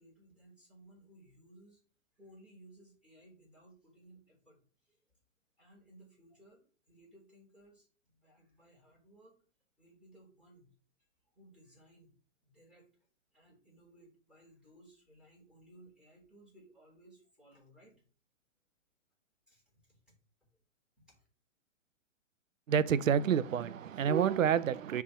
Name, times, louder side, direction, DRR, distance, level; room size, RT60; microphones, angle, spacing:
voice 1, 0.0-1.8 2.2-5.0 5.6-7.9 8.1-9.4 9.8-10.7 11.3-12.2 12.4-12.9 13.3-18.0 19.5-20.2 21.0-21.2, right 1 dB, 5° right, 4.3 m, -60 dB
voice 2, 22.7-25.0, right 8 dB, 80° right, 0.7 m, -28 dB
10.0 x 3.6 x 4.3 m
hypercardioid pair, 150°, 39 cm